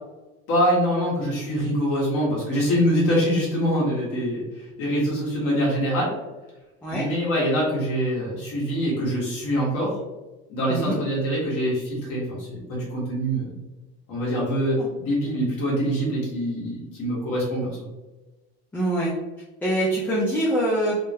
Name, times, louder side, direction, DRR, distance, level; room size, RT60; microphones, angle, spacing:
voice 1, 0.5-6.1 6.9-9.9 10.5-13.6 14.1-17.9, equal, 45° left, -5 dB, 1.3 m, -24 dB
voice 2, 18.7-19.1 19.6-21.0, right 1 dB, 5° left, -5 dB, 0.3 m, -24 dB
3.6 x 2.1 x 2.8 m, 1.1 s
supercardioid pair, 135°, 32 cm